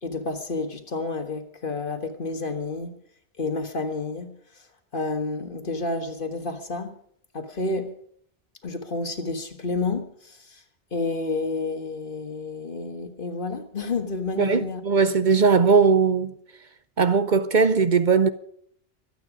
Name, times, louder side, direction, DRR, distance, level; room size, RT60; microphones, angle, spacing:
voice 1, 0.0-3.0 3.4-4.4 4.9-6.9 7.3-7.9 8.6-10.6 10.9-14.8, left 3 dB, 55° left, 1.8 m, -30 dB
voice 2, 14.4-16.3 17.0-18.3, right 5 dB, 50° right, 0.8 m, -19 dB
24.5 x 9.2 x 5.0 m
omnidirectional pair, 1.0 m